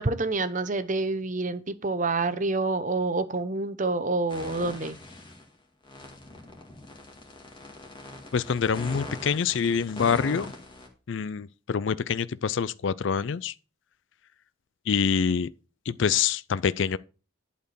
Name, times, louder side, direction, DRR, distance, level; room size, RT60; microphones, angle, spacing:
voice 1, 0.0-5.0, right 3 dB, 35° right, 0.8 m, -27 dB
sound 1, 4.3-5.4 5.8-10.9, left 2 dB, 25° left, 1.9 m, -41 dB
voice 2, 8.3-10.5 11.1-13.5 14.9-15.5 15.9-17.0, left 6 dB, 60° left, 0.4 m, -26 dB
11.5 x 4.4 x 6.8 m
head